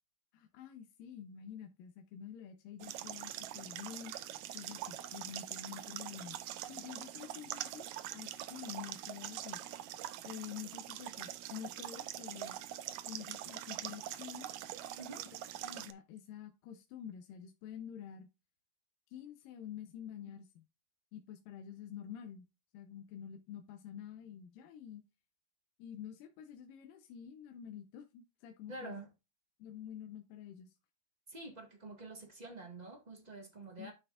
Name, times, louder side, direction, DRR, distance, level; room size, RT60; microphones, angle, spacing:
voice 1, 0.3-4.1 4.5-9.6 10.2-12.6 13.1-14.5 15.6-18.3 19.1-20.6 21.1-22.5 22.7-25.0 25.8-29.0 29.6-30.8 33.8-33.9, left 9 dB, 80° left, 2.4 m, -48 dB
sound 1, 2.8-15.9, right 12 dB, 75° right, 1.8 m, -44 dB
voice 2, 15.0-15.3 20.2-20.3 28.7-29.1 31.3-33.9, right 2 dB, 30° right, 0.7 m, -48 dB
11.0 x 6.1 x 2.4 m
omnidirectional pair, 4.0 m